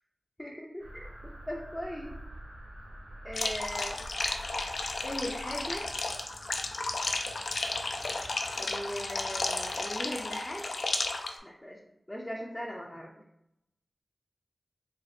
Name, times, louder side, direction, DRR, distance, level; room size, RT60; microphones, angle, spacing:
voice 1, 0.4-2.1 3.2-4.0 5.0-5.9 8.6-10.6 11.4-11.8 12.1-13.1, equal, 10° left, -3 dB, 0.5 m, -39 dB
sound 1, 0.8-9.8, right 1 dB, 60° right, 1.2 m, -47 dB
sound 2, 3.3-11.3, left 3 dB, 90° left, 0.4 m, -33 dB
3.1 x 2.6 x 4.1 m, 0.81 s
wide cardioid pair, 100°, 0 cm